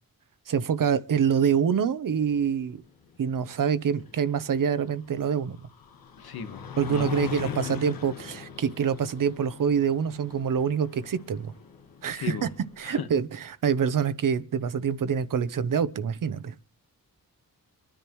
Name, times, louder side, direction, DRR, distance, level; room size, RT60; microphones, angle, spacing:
voice 1, 0.5-2.8 3.2-5.6 6.8-11.5 12.0-12.5 12.8-16.5, right 7 dB, 60° right, 0.8 m, -26 dB
sound 1, 2.2-12.8, left 7 dB, 70° left, 1.6 m, -43 dB
voice 2, 6.2-6.6 6.9-7.8 12.0-12.5 12.8-13.1, left 7 dB, 90° left, 1.4 m, -36 dB
25.0 x 10.0 x 3.1 m
wide cardioid pair, 170°, 36 cm